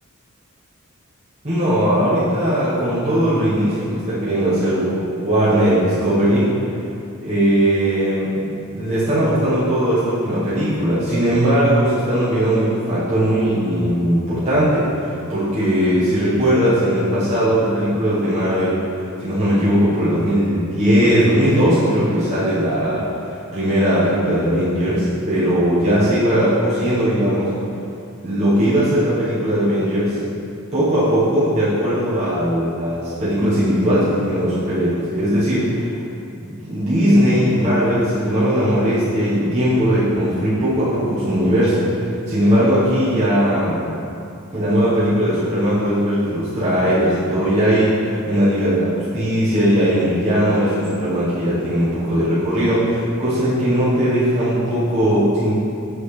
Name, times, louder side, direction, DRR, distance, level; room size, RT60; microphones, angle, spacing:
voice 1, 1.4-6.5 7.2-18.8 19.2-27.5 28.2-30.2 30.7-36.0 36.3-41.8 42.3-43.9 44.5-55.5, equal, 30° right, -12 dB, 1.2 m, -19 dB
6.4 x 5.4 x 3.3 m, 2.6 s
head